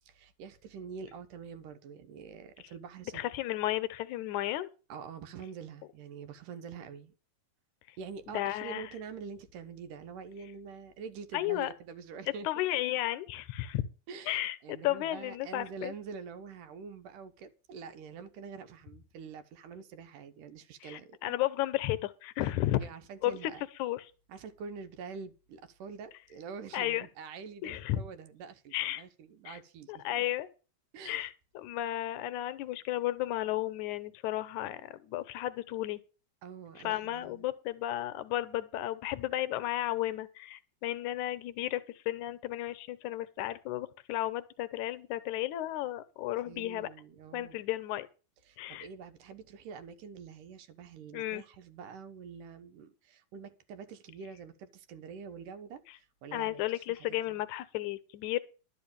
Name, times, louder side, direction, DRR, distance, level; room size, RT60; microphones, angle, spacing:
voice 1, 0.0-3.3 4.9-7.1 8.0-12.5 14.1-21.4 22.8-23.7 24.3-30.2 30.9-31.2 36.4-37.5 46.5-47.6 48.4-57.4, right 5 dB, 75° right, 2.4 m, -46 dB
voice 2, 3.1-4.7 8.3-8.9 11.3-11.7 12.4-13.9 14.3-15.9 20.8-22.8 23.2-23.4 23.8-24.0 26.7-27.0 27.6-28.0 28.7-29.0 29.5-29.6 29.9-30.5 31.1-36.0 36.8-46.9 47.3-48.1 48.6-48.9 51.1-51.4 56.3-58.4, left 14 dB, 70° left, 2.2 m, -33 dB
12.0 x 5.3 x 8.9 m
omnidirectional pair, 4.0 m